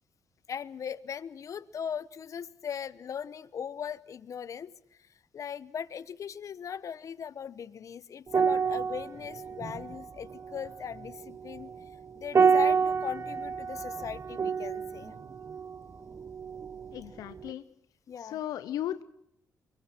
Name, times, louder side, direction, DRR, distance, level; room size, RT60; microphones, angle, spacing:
voice 1, 0.5-4.7 5.3-11.9 12.2-15.1 18.1-18.4, left 7 dB, 60° left, 17 dB, 1.0 m, -39 dB
sound 1, 8.3-17.0 17.3-17.5, right 6 dB, 45° right, 1.2 m, -29 dB
voice 2, 16.9-17.6 18.2-19.0, left 12 dB, 80° left, 13 dB, 0.8 m, -36 dB
24.0 x 21.5 x 6.0 m, 0.76 s
supercardioid pair, 65°, 6 cm